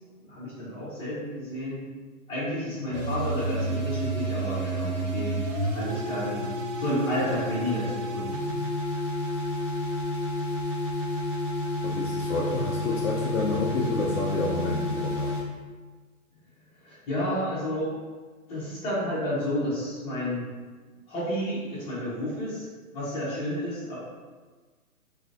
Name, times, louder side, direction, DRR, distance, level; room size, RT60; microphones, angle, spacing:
voice 1, 0.2-1.9 2.3-6.5 6.7-8.3 16.8-17.9 18.5-20.5 21.1-22.7 22.9-24.0, equal, 15° left, -11 dB, 1.3 m, -31 dB
sound 1, 2.9-15.4, equal, 60° right, 0.8 m, -30 dB
voice 2, 11.8-15.4, left 2 dB, 60° left, -2 dB, 0.5 m, -29 dB
3.2 x 2.9 x 2.6 m, 1.4 s
hypercardioid pair, 145°, 44 cm